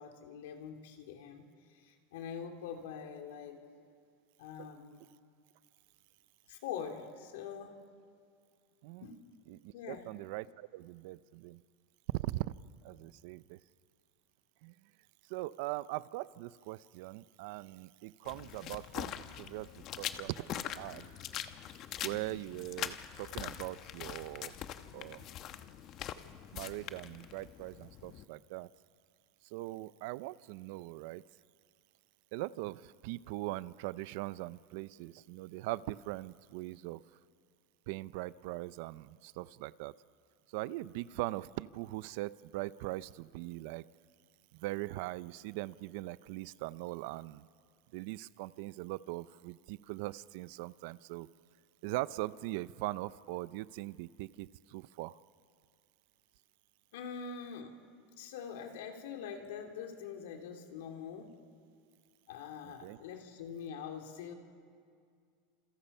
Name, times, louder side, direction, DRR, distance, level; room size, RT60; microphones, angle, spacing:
voice 1, 0.0-3.6 4.4-5.0 6.5-7.8 9.0-9.2 9.7-10.0 56.9-57.7 58.2-61.3 62.3-64.3, left 7 dB, 80° left, 4 dB, 3.0 m, -44 dB
voice 2, 9.5-11.6 12.1-12.5 12.8-13.6 14.6-14.7 15.3-21.1 22.0-24.5 24.9-25.3 26.5-28.7 29.4-31.2 32.3-37.0 37.9-39.9 40.5-43.8 44.5-47.5 47.9-51.3 51.8-55.2 62.6-63.0, right 18 dB, 60° right, 17 dB, 0.6 m, -41 dB
sound 1, 18.2-28.2, left 11 dB, 35° left, 1.0 m, -43 dB
29.0 x 28.0 x 5.6 m, 2.2 s
supercardioid pair, 155°, 0 cm